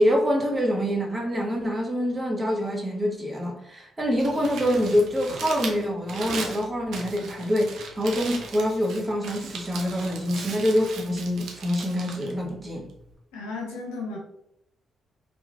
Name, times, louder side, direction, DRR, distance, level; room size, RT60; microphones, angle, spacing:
voice 1, 0.0-12.9, equal, 30° right, 0.8 m, -25 dB
Crumpling crinkling, 4.0-13.1, right 4 dB, 70° right, 0.5 m, -38 dB
voice 2, 13.3-14.2, left 3 dB, 80° left, 0.6 m, -34 dB
3.0 x 2.2 x 2.4 m
hypercardioid pair, 40°, 0 cm